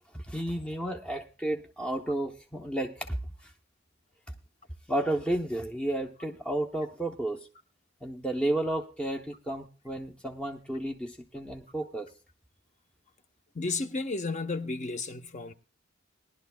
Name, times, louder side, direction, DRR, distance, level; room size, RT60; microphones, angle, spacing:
voice 1, 0.1-3.2 3.4-3.5 4.9-7.5 8.0-12.1, right 1 dB, 5° left, 0.7 m, -32 dB
voice 2, 13.5-15.5, left 3 dB, 40° left, 0.9 m, -33 dB
20.5 x 11.5 x 2.3 m
head